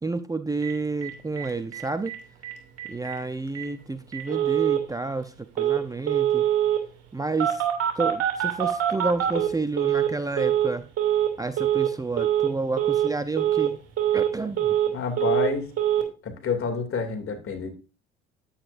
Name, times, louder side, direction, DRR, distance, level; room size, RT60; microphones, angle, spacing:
voice 1, 0.0-2.1 2.9-6.5 7.1-7.6 7.9-10.9 11.4-13.8 14.1-14.8, right 3 dB, 10° right, 11 dB, 0.6 m, -30 dB
Telephone, 0.6-0.7 1.0-1.1 1.4-1.5 1.7-2.2 2.4-2.5 2.8-3.2 3.6-3.7 4.1-4.8 5.6-5.8 6.1-6.8 7.4-10.1 10.4-10.7 11.0-11.3 11.6-11.9 12.2-12.5 12.8-13.1 13.4-13.7 14.0-14.9 15.2-15.5 15.8-16.0, right 11 dB, 55° right, 2.6 m, -24 dB
voice 2, 14.9-15.7 16.2-17.7, left 5 dB, 45° left, 5 dB, 2.6 m, -28 dB
9.5 x 8.7 x 2.6 m, 0.33 s
hypercardioid pair, 65°, 29 cm